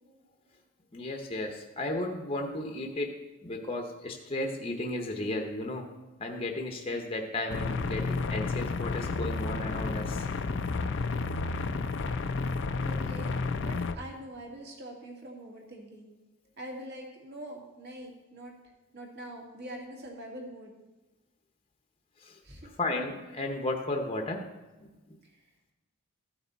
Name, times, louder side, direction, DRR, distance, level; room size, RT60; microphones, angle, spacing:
voice 1, 0.9-3.1 3.4-5.8 6.2-10.2 22.2-22.3 22.8-24.4 24.8-25.2, left 2 dB, 25° left, 3 dB, 0.9 m, -34 dB
sound 1, 7.5-13.9, left 3 dB, 55° left, 0.5 m, -31 dB
voice 2, 12.8-13.4 13.6-16.1 16.6-18.5 18.9-20.7 22.4-22.7, right 1 dB, 45° right, 0 dB, 1.9 m, -44 dB
14.0 x 5.8 x 4.0 m, 1.1 s
head